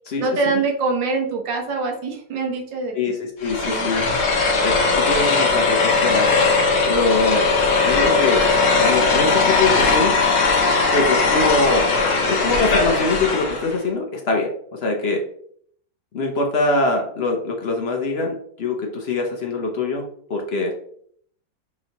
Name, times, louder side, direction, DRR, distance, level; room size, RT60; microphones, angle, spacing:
voice 1, 0.2-3.1 3.7-3.9, right 4 dB, 85° right, 1 dB, 1.7 m, -24 dB
voice 2, 2.9-4.1 4.6-6.4 6.9-7.5 7.8-8.5 8.8-10.2 10.9-11.9 12.2-15.3 16.1-20.8, left 3 dB, 65° left, 1 dB, 0.6 m, -23 dB
sound 1, 3.4-13.7, left 4 dB, 90° left, 1.8 m, -19 dB
6.0 x 2.9 x 2.8 m, 0.62 s
omnidirectional pair, 1.9 m